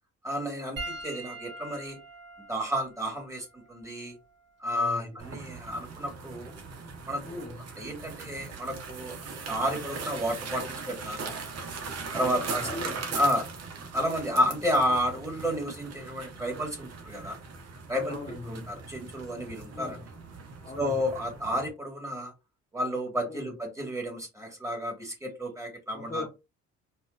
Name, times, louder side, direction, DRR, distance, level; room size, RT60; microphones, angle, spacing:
voice 1, 0.2-2.0 2.5-4.1 4.6-6.5 7.0-9.2 9.5-11.3 12.1-12.7 13.1-13.4 13.9-17.4 17.9-18.1 18.5-20.0 20.8-22.3 22.7-26.3, equal, 10° right, 1.6 m, -31 dB
Piano, 0.8-5.4 6.4-6.5 8.5-8.6, right 2 dB, 35° right, 2.1 m, -44 dB
voice 2, 4.7-5.6 7.3-7.6 12.1-13.1 14.7-15.0 18.1-18.7 19.7-20.1 20.6-21.2 23.3-23.5 25.9-26.3, left 2 dB, 20° left, 1.2 m, -41 dB
sound 1, 5.2-21.7, right 4 dB, 55° right, 1.2 m, -40 dB
4.4 x 2.5 x 2.4 m
cardioid pair, 90°, 30 cm